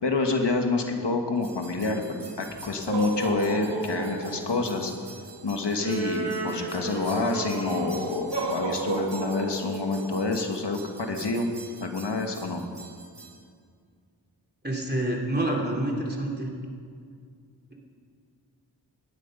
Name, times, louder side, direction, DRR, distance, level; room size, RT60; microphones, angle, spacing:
voice 1, 0.0-4.9 5.4-11.5 11.8-12.6, left 3 dB, 80° left, 4 dB, 1.6 m, -28 dB
sound 1, 1.4-13.3, right 3 dB, 80° right, 2.2 m, -34 dB
voice 2, 14.6-16.5, right 1 dB, 25° right, -1 dB, 3.0 m, -27 dB
18.0 x 12.0 x 5.5 m, 2.1 s
wide cardioid pair, 60°, 41 cm